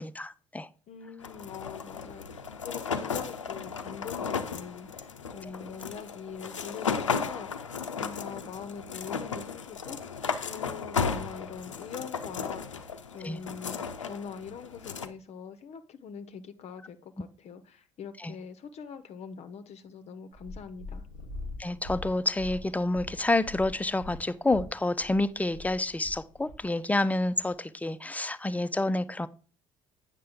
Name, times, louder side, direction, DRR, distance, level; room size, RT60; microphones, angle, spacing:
voice 1, 0.0-0.7 13.2-13.4 18.2-18.3 21.6-29.3, left 2 dB, 10° left, 0.5 m, -28 dB
voice 2, 0.9-12.8 13.1-21.1, left 6 dB, 45° left, 0.7 m, -43 dB
sound 1, 1.2-15.1, left 6 dB, 90° left, 0.6 m, -35 dB
Purr, 20.3-26.6 27.4-27.5, left 2 dB, 90° right, 3.8 m, -43 dB
8.7 x 6.6 x 3.6 m
figure-of-eight pair, 55°, 15 cm